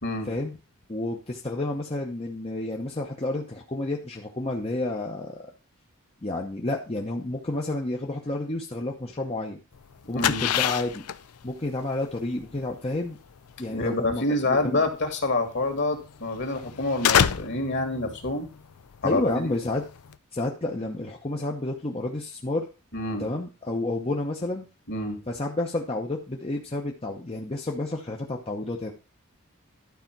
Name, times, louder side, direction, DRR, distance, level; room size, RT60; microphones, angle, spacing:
voice 1, 0.9-5.4 6.2-9.6 10.1-11.0 11.4-13.2 13.6-14.8 19.0-19.8 20.3-22.7 23.2-24.7 25.3-28.9, left 2 dB, 25° left, 1 dB, 0.9 m, -30 dB
sound 1, 9.7-20.2, left 9 dB, 90° left, 0.5 m, -29 dB
voice 2, 10.1-10.5 13.7-18.5 19.0-19.5 22.9-23.3 24.9-25.2, left 2 dB, 55° left, 5 dB, 2.3 m, -27 dB
11.5 x 4.3 x 5.9 m, 0.32 s
head